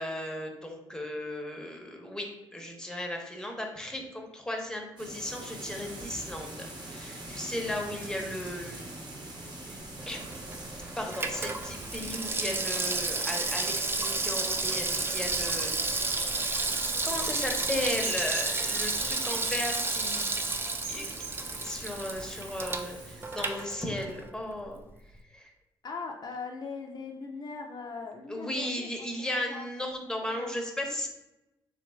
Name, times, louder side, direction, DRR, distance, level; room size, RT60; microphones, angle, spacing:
voice 1, 0.0-2.3 2.5-8.9 9.7-9.8 10.1-10.3 11.0-20.3 20.9-21.3 21.6-24.8 25.3-25.5 28.3-31.1, left 1 dB, 5° left, 2 dB, 0.7 m, -36 dB
sound 1, 5.0-23.6, right 1 dB, 50° right, 0.8 m, -45 dB
Water tap faucet / Sink (filling or washing), 10.0-24.3 24.6-24.7, right 3 dB, 25° right, 0.3 m, -32 dB
sound 2, 10.7-22.5, right 4 dB, 85° right, 0.5 m, -47 dB
voice 2, 25.8-28.9 29.5-29.7 30.2-30.6, left 4 dB, 50° left, 1 dB, 0.4 m, -40 dB
3.1 x 2.8 x 2.2 m, 0.94 s
supercardioid pair, 60°, 9 cm